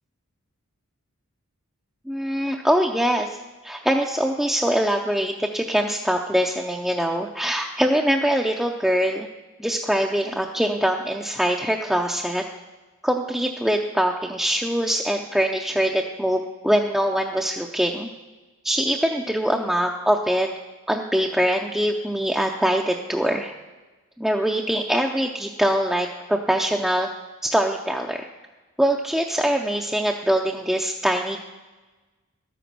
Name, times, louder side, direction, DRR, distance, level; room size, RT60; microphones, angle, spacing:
voice 1, 2.1-3.4 3.6-9.3 9.6-12.4 13.0-18.1 18.6-20.5 20.9-23.5 24.2-27.1 27.4-28.3 28.8-31.4, equal, ahead, 0 dB, 0.5 m, -23 dB
12.5 x 9.2 x 6.0 m, 1.2 s
head